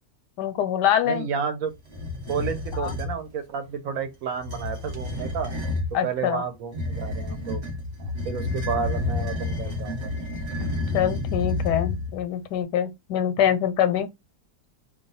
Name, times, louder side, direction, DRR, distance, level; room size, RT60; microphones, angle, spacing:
voice 1, 0.4-1.3 2.7-2.9 5.9-6.4 10.6-14.1, left 9 dB, 90° left, 1.2 m, -24 dB
voice 2, 1.1-1.7 2.3-5.5 6.0-7.6 8.0-10.1, right 6 dB, 65° right, 1.0 m, -31 dB
sound 1, 1.9-3.2 4.3-5.9 6.7-12.2, left 2 dB, 35° right, 1.1 m, -30 dB
2.7 x 2.2 x 4.0 m
omnidirectional pair, 1.7 m